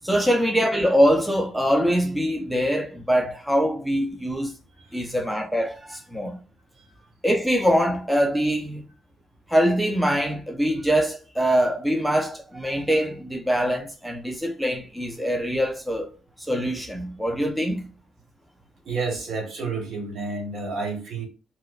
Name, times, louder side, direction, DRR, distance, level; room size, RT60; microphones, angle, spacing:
voice 1, 0.0-4.5 4.9-6.4 7.2-8.8 9.5-16.1 16.4-17.9, equal, 5° right, 0.4 m, -23 dB
voice 2, 4.8-5.1 6.8-7.0 18.8-21.3, right 4 dB, 50° right, 1.3 m, -31 dB
4.5 x 2.2 x 2.3 m
cardioid pair, 135°, 0 cm